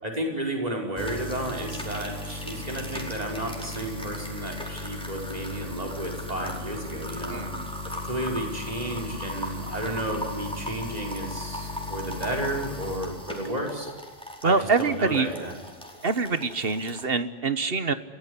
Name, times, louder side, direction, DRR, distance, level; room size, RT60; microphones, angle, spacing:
voice 1, 0.0-7.4 7.8-13.9 14.4-15.5, right 1 dB, 30° right, 1 dB, 5.8 m, -32 dB
sound 1, 1.0-17.1, left 1 dB, 5° left, 4.7 m, -36 dB
voice 2, 7.3-7.7 14.4-15.3 16.0-17.9, right 4 dB, 50° right, 12 dB, 1.6 m, -25 dB
30.0 x 17.0 x 9.9 m, 1.3 s
omnidirectional pair, 1.3 m